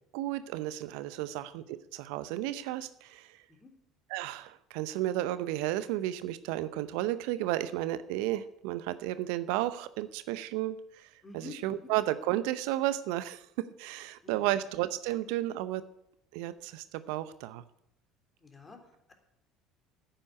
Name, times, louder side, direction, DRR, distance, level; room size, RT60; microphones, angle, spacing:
voice 1, 0.1-3.3 4.1-13.5 13.8-15.8 16.3-17.6, right 14 dB, 65° right, 14 dB, 0.6 m, -33 dB
voice 2, 11.2-11.8 14.2-14.5 18.4-18.8, left 3 dB, 25° left, 5 dB, 3.5 m, -48 dB
9.9 x 8.9 x 9.6 m, 0.80 s
figure-of-eight pair, 65°, 0 cm